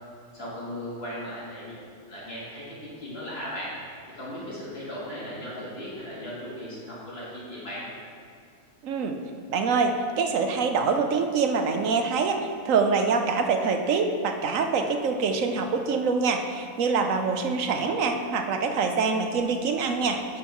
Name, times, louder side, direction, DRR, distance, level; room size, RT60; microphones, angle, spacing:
voice 1, 0.3-3.7 4.1-7.9, equal, 45° left, -8 dB, 2.8 m, -37 dB
voice 2, 8.8-9.2 9.5-20.4, right 4 dB, 70° right, 5 dB, 1.1 m, -25 dB
10.0 x 4.4 x 5.8 m, 2.4 s
omnidirectional pair, 1.4 m